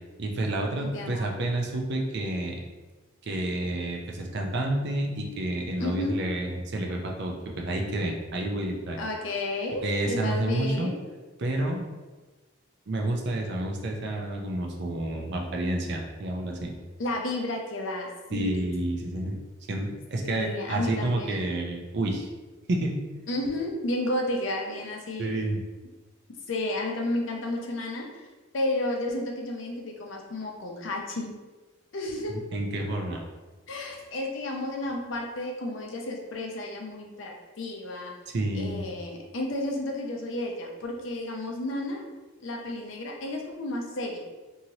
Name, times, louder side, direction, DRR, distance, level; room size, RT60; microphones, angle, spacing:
voice 1, 0.2-2.6 3.2-9.0 9.8-10.9 11.4-11.9 12.9-16.7 18.3-19.4 19.7-22.3 22.7-23.0 25.2-25.6 32.3-33.2 38.3-38.8, right 1 dB, 50° right, 1 dB, 0.4 m, -29 dB
voice 2, 0.8-1.3 5.8-6.2 9.0-11.0 17.0-18.6 20.2-21.5 23.3-25.4 26.5-28.3 28.5-31.3 31.9-32.4 33.7-38.1 38.5-42.0 42.4-44.2, left 1 dB, 60° left, 0 dB, 0.5 m, -32 dB
2.9 x 2.7 x 2.7 m, 1.3 s
head